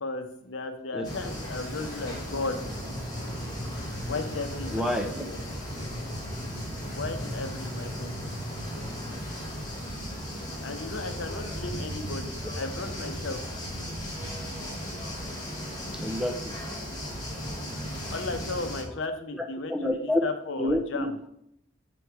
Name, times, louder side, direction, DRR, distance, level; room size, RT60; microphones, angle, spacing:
voice 1, 0.0-2.6 4.0-5.4 6.8-8.4 10.6-13.4 18.1-21.2, left 3 dB, 80° left, 7 dB, 0.7 m, -35 dB
sound 1, 1.0-18.8, equal, 20° left, 1.4 m, -36 dB
voice 2, 4.7-5.2 16.0-16.5 19.7-20.2 20.6-21.3, left 1 dB, 5° right, 4 dB, 0.5 m, -28 dB
6.9 x 3.2 x 4.6 m, 0.74 s
head